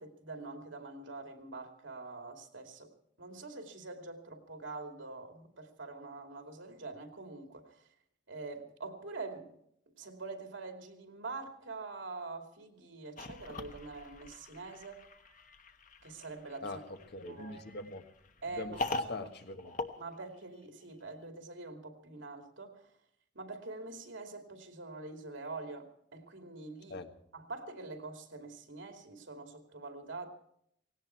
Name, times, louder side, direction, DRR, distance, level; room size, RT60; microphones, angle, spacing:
voice 1, 0.0-2.9 3.2-7.9 8.3-9.6 9.9-15.0 16.0-16.8 17.2-17.6 18.4-19.3 20.0-22.9 23.3-27.0 27.3-30.3, right 3 dB, 80° right, 4 dB, 2.6 m, -45 dB
sound 1, 13.2-20.8, left 2 dB, 45° left, 1.2 m, -42 dB
voice 2, 16.6-18.0 18.5-19.7 26.9-27.1, left 2 dB, 60° left, 6 dB, 1.5 m, -43 dB
18.0 x 17.5 x 4.5 m, 0.72 s
head